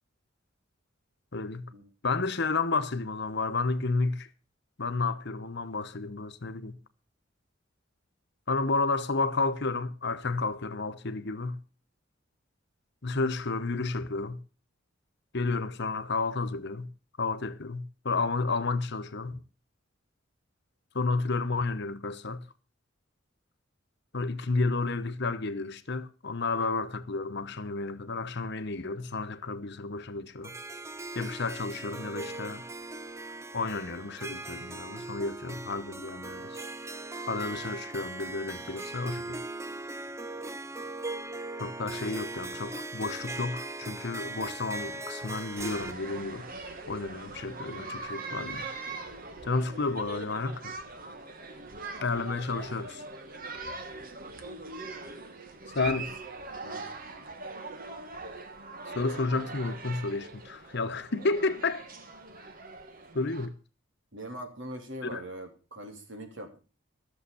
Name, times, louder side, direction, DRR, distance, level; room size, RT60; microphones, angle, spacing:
voice 1, 1.3-1.7 2.0-4.3 4.8-6.8 8.5-11.6 13.0-14.4 15.3-16.9 17.2-19.4 20.9-22.4 24.1-30.5 31.1-32.6 33.5-36.6 37.3-39.4 41.6-46.5 46.9-48.7 49.4-50.8 52.0-53.0 55.7-56.1 58.9-61.8 63.1-63.5 65.0-65.2, left 3 dB, 60° left, 1.0 m, -31 dB
Harp, 30.4-45.9, right 2 dB, 15° right, 0.5 m, -39 dB
sound 1, 45.6-63.5, right 3 dB, 45° right, 1.7 m, -42 dB
voice 2, 64.1-66.6, equal, 65° right, 3.4 m, -41 dB
14.5 x 7.3 x 6.9 m
head